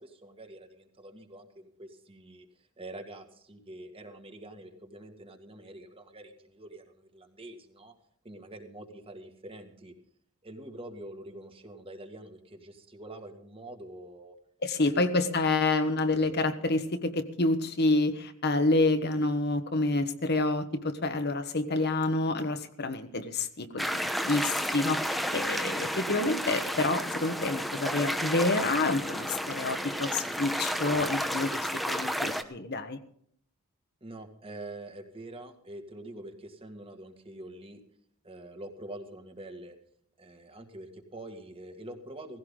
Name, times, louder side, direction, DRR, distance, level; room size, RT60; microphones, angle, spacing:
voice 1, 0.0-7.9 8.2-9.9 10.4-14.4 14.8-14.9 34.0-37.8 38.2-39.8 40.2-42.4, right 1 dB, 25° right, 5 dB, 2.0 m, -45 dB
voice 2, 14.6-31.6 31.9-33.0, left 2 dB, 45° left, 8 dB, 1.3 m, -28 dB
sound 1, 23.8-32.4, equal, ahead, 1.0 m, -32 dB
17.5 x 16.0 x 3.8 m, 0.64 s
head